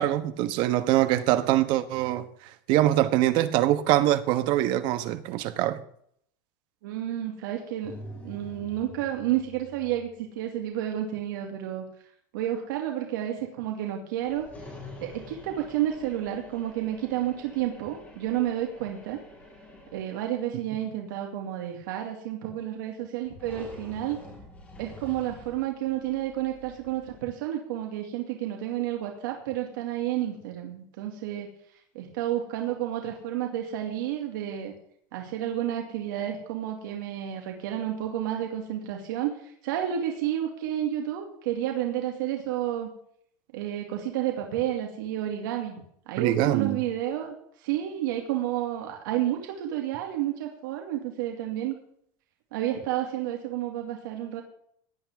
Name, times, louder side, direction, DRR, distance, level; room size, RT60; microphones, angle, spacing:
voice 1, 0.0-2.2 2.7-5.8 46.2-46.8, right 13 dB, 50° right, 1.4 m, -23 dB
voice 2, 6.8-7.9 8.2-10.1 10.4-11.8 12.3-14.5 15.0-19.2 19.9-24.2 24.8-31.5 31.9-34.7 35.1-42.9 43.5-51.8 52.5-54.4, right 12 dB, 85° right, 2.5 m, -30 dB
sound 1, 7.8-10.1 14.2-20.1 23.2-27.2, left 1 dB, 15° left, 6.8 m, -47 dB
18.0 x 11.0 x 3.7 m
supercardioid pair, 160°, 10 cm